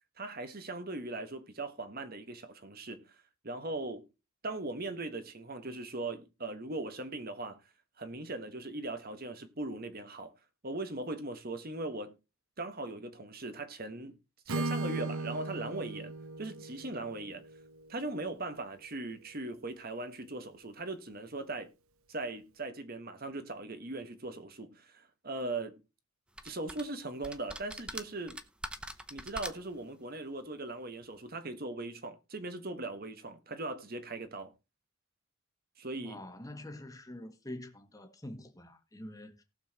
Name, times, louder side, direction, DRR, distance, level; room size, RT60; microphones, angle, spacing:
voice 1, 0.2-3.2 3.4-4.1 4.4-7.6 8.0-10.3 10.6-12.2 12.6-14.2 14.5-16.1 16.4-17.4 17.9-21.7 22.1-25.8 26.4-28.4 29.1-34.5 35.8-36.2, right 2 dB, 40° right, 1.3 m, -39 dB
Acoustic guitar / Strum, 14.5-18.4, right 2 dB, 75° right, 0.9 m, -38 dB
sound 1, 26.4-26.8 27.2-29.8, right 1 dB, 5° right, 0.7 m, -42 dB
voice 2, 36.0-39.4, left 1 dB, 15° left, 1.5 m, -46 dB
19.0 x 7.0 x 2.9 m
head